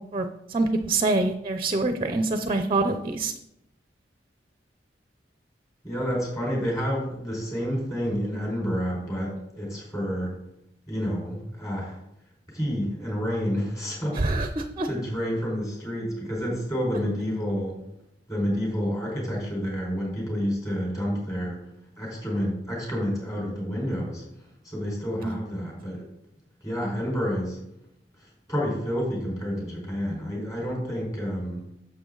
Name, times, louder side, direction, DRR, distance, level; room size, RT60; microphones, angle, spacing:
voice 1, 0.1-3.3 14.1-14.9 25.2-25.3, right 2 dB, 30° right, 8 dB, 0.6 m, -25 dB
voice 2, 5.8-10.4 10.9-12.0 12.5-14.2 14.8-17.8 18.3-21.6 22.0-24.2 24.6-26.1 26.6-27.6 28.2-31.7, equal, 20° left, -3 dB, 4.5 m, -29 dB
11.0 x 7.5 x 3.9 m, 0.81 s
head